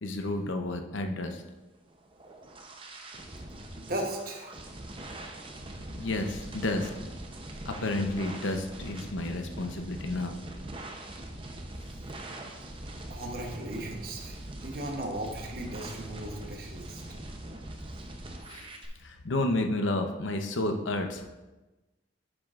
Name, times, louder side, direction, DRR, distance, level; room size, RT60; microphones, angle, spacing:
voice 1, 0.0-1.4 5.9-6.9 7.6-10.4 18.5-18.7 19.0-21.2, left 2 dB, 80° left, 5 dB, 0.8 m, -31 dB
sound 1, 1.9-18.9, right 1 dB, 25° right, 0.7 m, -42 dB
voice 2, 3.7-4.5 13.1-17.0, right 1 dB, 50° right, 1 dB, 1.0 m, -37 dB
9.8 x 7.3 x 2.5 m, 1.1 s
head